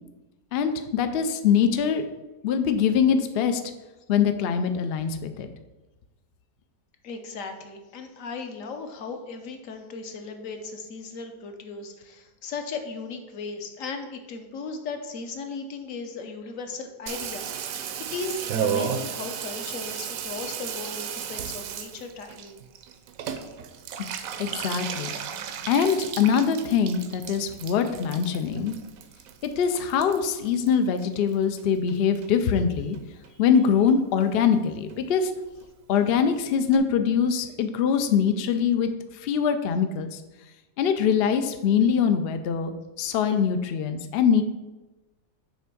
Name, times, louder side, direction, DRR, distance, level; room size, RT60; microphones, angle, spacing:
voice 1, 0.5-2.1 2.4-3.6 4.1-5.5 24.4-25.1 25.7-28.7 29.4-33.0 33.4-35.3 35.9-40.2 40.8-44.4, left 7 dB, 85° left, 8 dB, 0.5 m, -23 dB
voice 2, 7.0-17.8 18.1-22.6 33.3-33.4, left 4 dB, 65° left, 6 dB, 1.1 m, -37 dB
Water tap faucet / Bathtub (filling or washing), 17.1-31.6 31.9-32.6 32.9-33.0 33.2-33.3 33.5-33.9 34.2-34.3 34.5-34.6 34.9-35.0 35.2-35.3 35.6-35.7 36.0-36.1 36.3-36.4 36.7-36.8, right 8 dB, 70° right, 0.9 m, -34 dB
7.0 x 3.4 x 6.0 m, 1.1 s
omnidirectional pair, 1.7 m